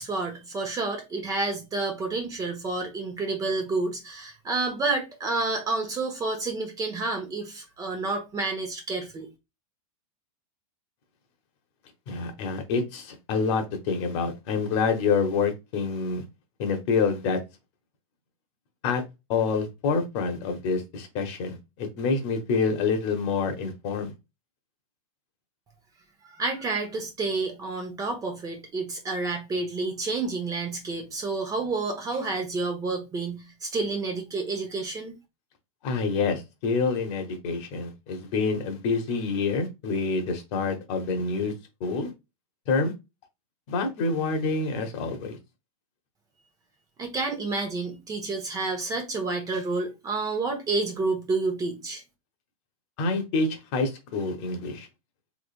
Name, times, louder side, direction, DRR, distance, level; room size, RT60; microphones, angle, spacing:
voice 1, 0.0-9.3 26.3-35.1 47.0-52.0, right 3 dB, 20° right, 1.1 m, -29 dB
voice 2, 12.1-16.2 16.6-17.4 18.8-19.0 19.3-24.1 35.8-41.5 41.8-42.1 42.7-42.9 43.7-45.4 53.0-54.9, left 4 dB, 50° left, 1.2 m, -27 dB
3.4 x 3.3 x 2.4 m
supercardioid pair, 140°, 19 cm